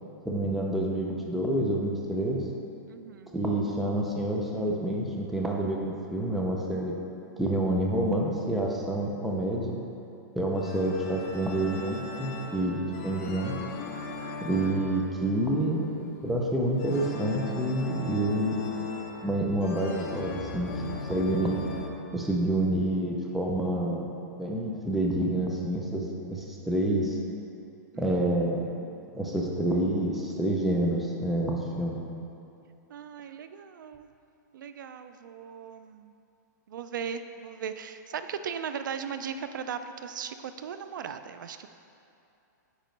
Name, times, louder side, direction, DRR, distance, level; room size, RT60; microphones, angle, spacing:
voice 1, 0.3-2.4 3.3-7.0 7.4-9.8 10.4-13.5 14.4-18.9 19.2-20.8 21.1-21.6 22.1-24.1 24.3-27.2 28.0-28.7 29.1-32.0, right 1 dB, ahead, -2 dB, 0.4 m, -28 dB
voice 2, 2.9-3.4 27.9-28.1 32.9-34.1 34.5-36.1 36.7-41.7, right 7 dB, 85° right, 10 dB, 0.4 m, -38 dB
sound 1, 10.6-21.9, left 4 dB, 45° left, 0.8 m, -39 dB
8.8 x 3.0 x 5.2 m, 2.7 s
hypercardioid pair, 165°, 10 cm